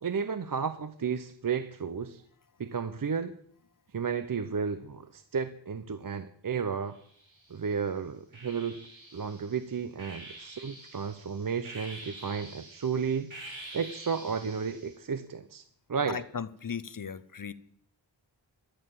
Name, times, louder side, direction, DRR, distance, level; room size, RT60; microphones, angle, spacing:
voice 1, 0.0-2.2 2.6-3.3 3.9-7.0 7.5-8.8 9.1-13.3 13.7-15.6 15.9-16.2, right 6 dB, 45° right, 12 dB, 0.7 m, -33 dB
sound 1, 6.9-7.7 8.3-15.0, right 2 dB, 80° right, 4.6 m, -47 dB
voice 2, 16.1-17.5, left 6 dB, 45° left, 17 dB, 0.7 m, -37 dB
13.0 x 6.7 x 8.9 m, 0.64 s
wide cardioid pair, 70°, 46 cm